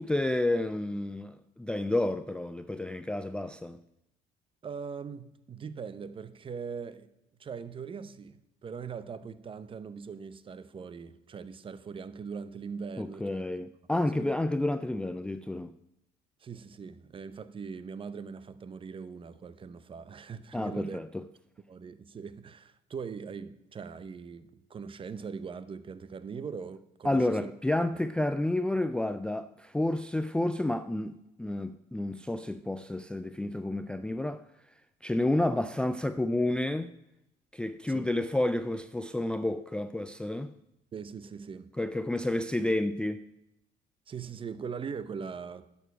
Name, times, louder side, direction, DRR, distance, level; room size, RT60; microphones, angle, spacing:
voice 1, 0.0-3.8 13.0-15.7 20.5-21.2 27.0-34.4 35.0-36.9 37.5-40.5 41.8-43.2, left 1 dB, 5° left, 0.4 m, -30 dB
voice 2, 4.6-7.1 7.4-13.4 14.1-14.3 16.4-21.0 21.7-27.5 37.9-38.1 40.9-41.7 44.1-45.7, right 6 dB, 30° right, 0.7 m, -41 dB
11.0 x 7.1 x 6.0 m
cardioid pair, 110°, 17 cm